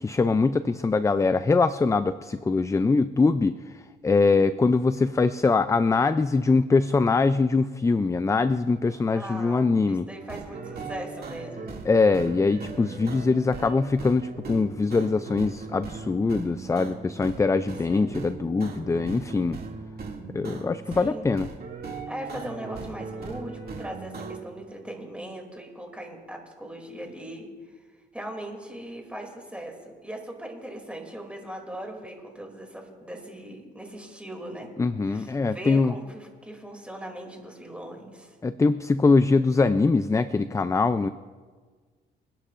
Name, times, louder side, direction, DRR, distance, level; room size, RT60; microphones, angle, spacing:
voice 1, 0.0-10.1 11.9-19.6 20.3-21.5 34.8-35.9 38.4-41.1, left 4 dB, 15° left, 13 dB, 0.4 m, -23 dB
voice 2, 9.1-11.7 17.9-18.2 20.9-21.3 22.1-27.5 28.1-34.7 35.0-38.4, right 1 dB, 5° right, 1 dB, 2.7 m, -39 dB
sound 1, 10.1-17.4 17.7-21.1 21.4-24.4, right 4 dB, 50° right, 2.3 m, -39 dB
27.5 x 10.0 x 2.5 m, 1.5 s
cardioid pair, 90°, 20 cm